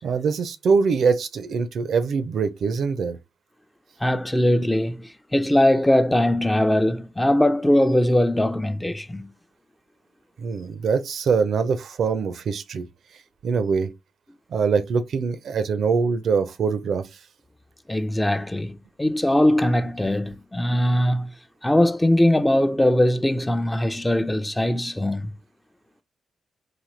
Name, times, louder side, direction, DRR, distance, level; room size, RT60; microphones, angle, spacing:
voice 1, 0.0-3.2 10.4-12.9 13.4-13.9 14.5-17.1, right 5 dB, 65° right, 0.5 m, -23 dB
voice 2, 4.0-9.3 17.9-21.3 21.6-25.3, left 1 dB, 15° left, 0.6 m, -21 dB
4.0 x 2.7 x 3.2 m
hypercardioid pair, 45°, 0 cm